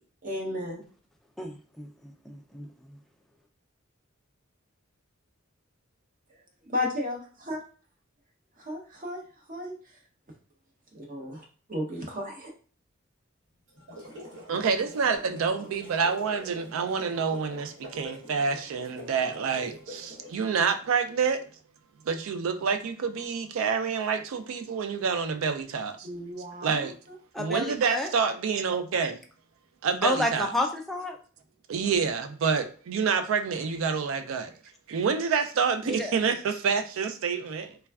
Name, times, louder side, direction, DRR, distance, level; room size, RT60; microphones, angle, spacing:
voice 1, 0.2-0.8 6.7-7.2 7.5-7.6 8.6-9.2 9.5-9.7 10.9-12.5 26.0-26.9, left 1 dB, 40° right, 0 dB, 0.7 m, -33 dB
voice 2, 1.4-2.9 27.3-28.1 30.0-31.2 35.8-36.1, left 1 dB, ahead, 2 dB, 0.3 m, -31 dB
sound 1, 13.7-20.5, equal, 65° right, 1.0 m, -45 dB
voice 3, 14.5-21.5 22.1-26.1 26.6-26.9 27.4-29.2 29.8-30.5 31.7-34.5 34.9-37.8, right 5 dB, 85° right, 8 dB, 0.4 m, -28 dB
3.3 x 2.2 x 2.3 m, 0.39 s
head